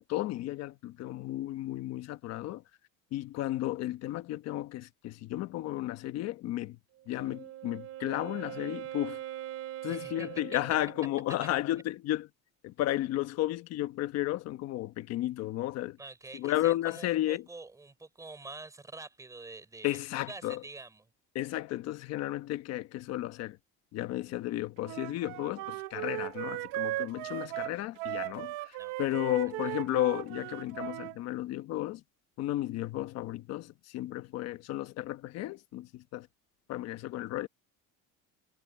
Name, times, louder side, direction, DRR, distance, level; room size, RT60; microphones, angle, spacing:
voice 1, 0.0-2.6 3.1-6.8 7.1-9.2 9.8-12.3 12.6-16.0 16.3-17.4 19.8-20.6 21.3-23.6 23.9-32.0 32.4-36.3 36.7-37.5, left 15 dB, 50° left, 1.1 m, -33 dB
Wind instrument woodwind instrument, 7.0-11.3, right 13 dB, 45° right, 2.7 m, -42 dB
voice 2, 9.9-10.6 11.4-11.5 16.0-21.1 28.8-29.2 29.6-29.7, right 3 dB, 10° right, 4.0 m, -47 dB
Wind instrument woodwind instrument 2, 24.8-31.2, right 19 dB, 75° right, 1.4 m, -37 dB
cardioid pair, 170°, 34 cm